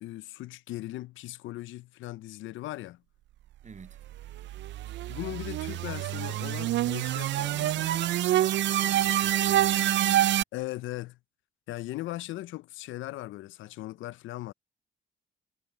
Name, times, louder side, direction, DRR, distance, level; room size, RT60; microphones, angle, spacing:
voice 1, 0.0-3.0 5.1-8.1 10.5-11.2 11.7-14.5, left 16 dB, 75° left, 0.5 m, -38 dB
voice 2, 3.6-4.0 8.8-10.4, right 5 dB, 35° right, 8.0 m, -48 dB
sound 1, 4.0-10.4, right 13 dB, 65° right, 0.4 m, -27 dB
cardioid pair, 90°, 20 cm